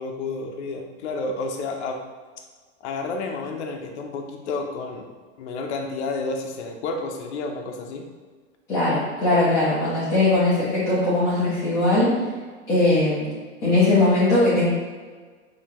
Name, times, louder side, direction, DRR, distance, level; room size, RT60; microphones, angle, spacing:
voice 1, 0.0-2.0 2.8-5.1 5.4-8.1, left 3 dB, 60° left, 3 dB, 0.7 m, -30 dB
voice 2, 8.7-12.1 12.7-13.3 13.6-14.7, left 2 dB, 10° left, -13 dB, 0.6 m, -20 dB
5.3 x 2.8 x 2.9 m, 1.5 s
supercardioid pair, 175°, 38 cm